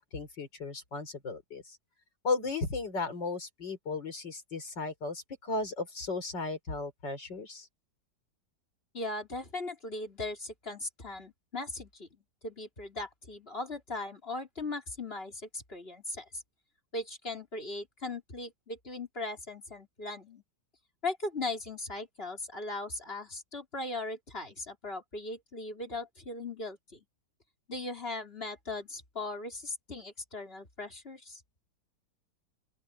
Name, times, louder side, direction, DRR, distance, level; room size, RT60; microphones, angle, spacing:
voice 1, 0.0-1.8 2.2-7.7, left 3 dB, 90° left, 5.2 m, -35 dB
voice 2, 8.9-16.4 16.9-20.4 21.0-27.0 27.7-31.4, left 2 dB, 35° left, 3.9 m, -39 dB
open air
omnidirectional pair, 1.9 m